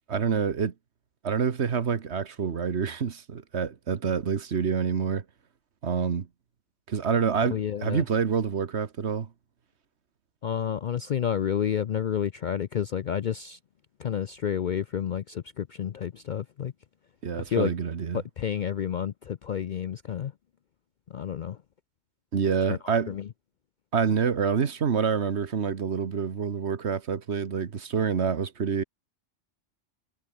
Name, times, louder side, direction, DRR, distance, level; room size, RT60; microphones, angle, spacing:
voice 1, 0.1-0.7 1.2-5.2 5.8-6.3 6.9-9.3 17.2-18.2 22.3-23.2 23.9-28.8, right 6 dB, 65° right, 1.5 m, -27 dB
voice 2, 7.5-8.0 10.4-13.6 14.0-16.7 17.3-17.7 18.1-20.3 21.1-21.6 22.7-23.3, left 9 dB, 55° left, 0.5 m, -30 dB
omnidirectional pair, 1.2 m